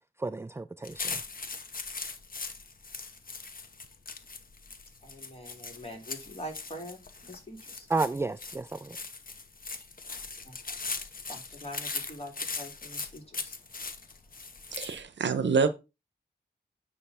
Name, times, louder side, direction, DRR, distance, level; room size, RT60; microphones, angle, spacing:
voice 1, 0.2-1.2 7.9-9.0, right 3 dB, 15° right, 0.4 m, -32 dB
sound 1, 0.8-15.0, left 4 dB, 50° left, 1.1 m, -40 dB
voice 2, 5.0-7.9 10.4-14.6, equal, 35° left, 3.0 m, -45 dB
voice 3, 14.7-15.7, right 5 dB, 80° right, 0.9 m, -26 dB
9.3 x 3.2 x 5.6 m
cardioid pair, 50°, 18 cm